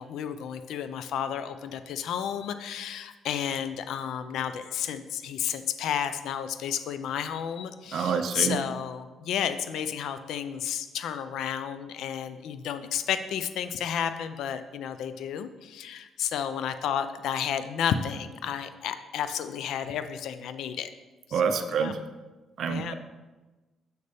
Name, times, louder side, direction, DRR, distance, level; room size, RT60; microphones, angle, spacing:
voice 1, 0.0-20.9 21.3-21.4 21.7-21.9 22.7-22.9, left 8 dB, 80° left, 11 dB, 0.4 m, -32 dB
voice 2, 7.9-8.6 21.3-22.0 22.6-22.9, right 6 dB, 65° right, 7 dB, 0.5 m, -27 dB
6.6 x 6.6 x 3.5 m, 1.2 s
cardioid pair, 90°, 0 cm